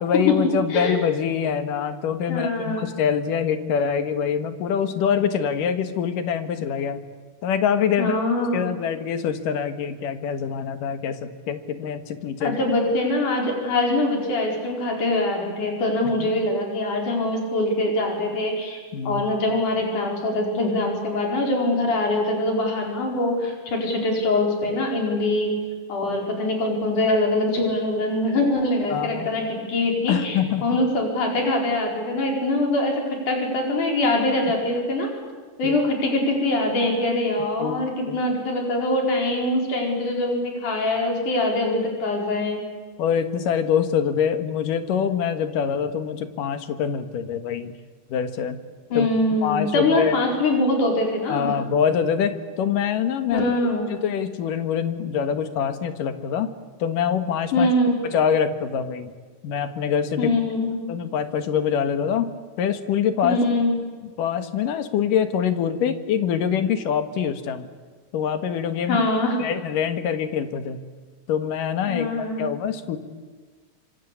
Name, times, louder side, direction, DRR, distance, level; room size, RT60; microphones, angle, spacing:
voice 1, 0.0-7.0 7.4-8.2 8.5-12.6 16.2-16.3 18.9-19.2 28.9-29.3 30.1-30.8 35.6-35.8 37.6-38.2 43.0-47.7 48.1-48.6 48.9-49.1 49.4-50.2 51.3-53.4 53.9-56.5 56.8-57.7 58.0-59.1 59.4-60.3 60.9-63.4 64.0-67.7 68.1-69.0 69.4-70.8 71.3-72.1 72.4-73.0, left 8 dB, 90° left, 9 dB, 3.2 m, -24 dB
voice 2, 2.3-2.8 8.0-8.7 12.4-25.5 25.9-35.1 35.6-42.6 48.9-51.6 53.3-53.9 57.5-57.9 60.2-60.7 63.2-63.7 68.9-69.4 71.9-72.6, left 2 dB, 70° left, 1 dB, 6.3 m, -23 dB
26.0 x 25.0 x 8.5 m, 1.5 s
omnidirectional pair, 3.7 m